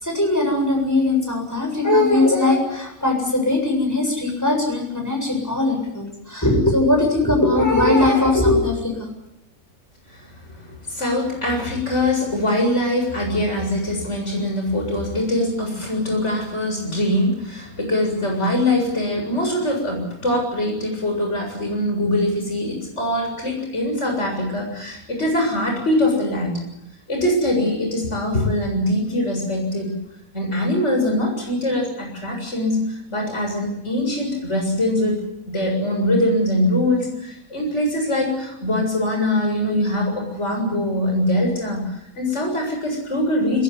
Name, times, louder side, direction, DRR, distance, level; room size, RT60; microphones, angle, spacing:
voice 1, 0.0-9.1, left 2 dB, 10° left, 1 dB, 7.6 m, -19 dB
voice 2, 10.1-26.6 27.1-30.0 30.3-43.6, left 1 dB, 50° left, 1 dB, 7.8 m, -23 dB
22.0 x 20.5 x 9.8 m, 0.84 s
omnidirectional pair, 1.5 m